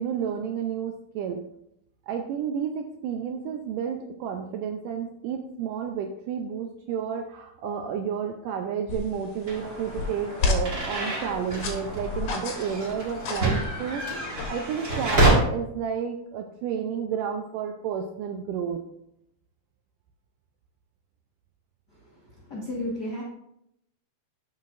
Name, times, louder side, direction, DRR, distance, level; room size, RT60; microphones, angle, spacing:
voice 1, 0.0-1.4 2.1-18.9, right 7 dB, 80° right, 4 dB, 1.9 m, -31 dB
sound 1, 8.9-15.1, left 4 dB, 60° left, 2.1 m, -33 dB
sound 2, 9.5-15.3, right 2 dB, 30° right, 1.4 m, -28 dB
voice 2, 21.9-23.2, left 1 dB, 75° left, -4 dB, 0.9 m, -34 dB
12.0 x 5.7 x 2.5 m, 0.77 s
omnidirectional pair, 4.3 m